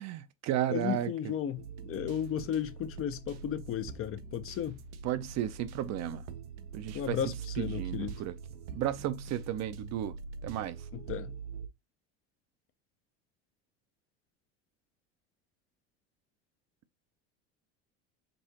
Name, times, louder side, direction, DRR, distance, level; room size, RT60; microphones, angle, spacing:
voice 1, 0.0-1.1 5.0-6.3 6.7-7.2 7.6-8.4 8.7-10.2 10.4-10.9, right 12 dB, 50° right, 0.6 m, -33 dB
voice 2, 0.7-4.8 6.9-8.2 10.9-11.4, left 10 dB, 40° left, 0.5 m, -34 dB
sound 1, 1.6-11.7, right 6 dB, 85° right, 0.7 m, -43 dB
5.3 x 2.7 x 2.8 m
supercardioid pair, 95°, 34 cm